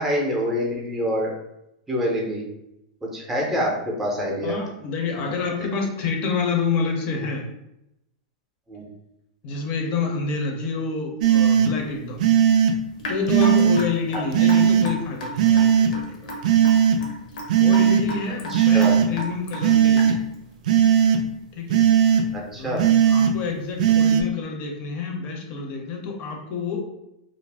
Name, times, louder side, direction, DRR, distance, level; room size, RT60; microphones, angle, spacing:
voice 1, 0.0-1.3 1.9-2.4 3.0-4.6 8.7-8.9 18.5-18.9 22.3-22.9, equal, 5° right, -2 dB, 0.6 m, -26 dB
voice 2, 4.4-7.4 9.4-12.3 13.1-16.4 17.6-20.2 21.5-21.8 22.5-26.8, left 4 dB, 35° left, 2 dB, 0.6 m, -28 dB
sound 1, 11.2-11.7 12.2-12.7 13.3-13.8 14.3-14.9 15.4-15.9 16.4-17.0 17.5-18.0 18.5-19.1 19.6-20.1 20.7-21.2 21.7-22.2 22.8-23.3 23.8-24.2, right 9 dB, 75° right, 0.3 m, -17 dB
Raindrop / Drip, 13.0-20.3, equal, 80° left, 0.7 m, -34 dB
2.4 x 2.0 x 3.3 m, 0.85 s
supercardioid pair, 150°, 4 cm